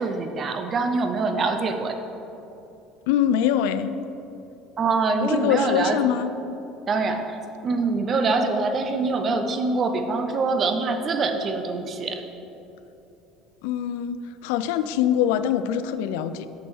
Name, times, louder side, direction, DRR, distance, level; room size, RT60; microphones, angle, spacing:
voice 1, 0.0-2.0 4.8-6.0 6.9-12.2, right 3 dB, 25° right, 6 dB, 0.4 m, -24 dB
voice 2, 3.1-3.9 5.2-6.3 13.6-16.5, left 10 dB, 85° left, 12 dB, 0.3 m, -23 dB
6.3 x 5.9 x 4.6 m, 2.9 s
cardioid pair, 180°, 0 cm